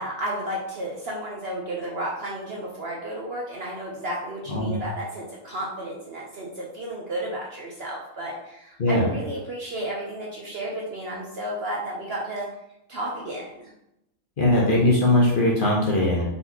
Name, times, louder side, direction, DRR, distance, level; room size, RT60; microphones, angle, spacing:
voice 1, 0.0-12.5 12.9-13.7, right 1 dB, 55° right, -3 dB, 0.8 m, -32 dB
voice 2, 14.4-16.2, left 1 dB, 45° left, -4 dB, 0.9 m, -20 dB
4.1 x 4.0 x 2.8 m, 0.83 s
omnidirectional pair, 1.6 m